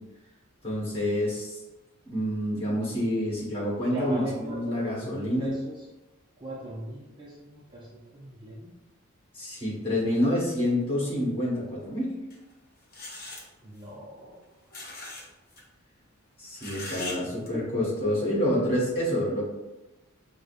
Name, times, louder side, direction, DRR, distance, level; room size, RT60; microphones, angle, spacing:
voice 1, 0.6-1.6 2.1-5.5 9.3-12.1 16.4-19.4, left 1 dB, 25° left, -7 dB, 1.2 m, -28 dB
voice 2, 3.8-5.9 6.4-8.7 13.6-14.4 17.0-17.2 17.5-17.6 18.0-18.1, right 1 dB, 20° right, -6 dB, 0.4 m, -39 dB
sound 1, 12.3-12.4 12.9-13.4 14.7-15.2 15.5-15.6 16.6-17.2 17.5-17.6, left 2 dB, 45° left, 0.7 m, -39 dB
4.9 x 2.0 x 2.4 m, 1.1 s
head